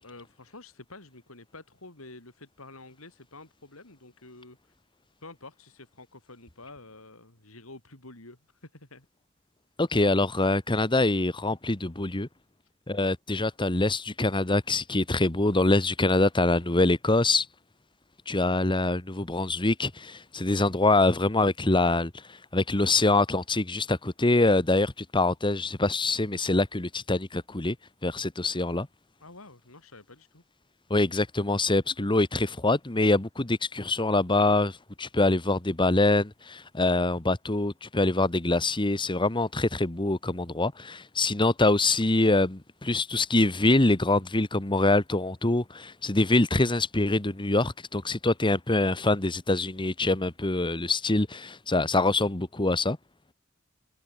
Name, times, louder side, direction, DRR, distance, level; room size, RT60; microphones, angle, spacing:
voice 1, 0.0-4.7 5.2-9.1 29.2-30.4, left 2 dB, 80° left, 5.9 m, -49 dB
voice 2, 9.8-12.3 12.9-17.5 18.3-27.7 28.0-28.9 30.9-53.0, left 2 dB, 25° left, 1.5 m, -24 dB
head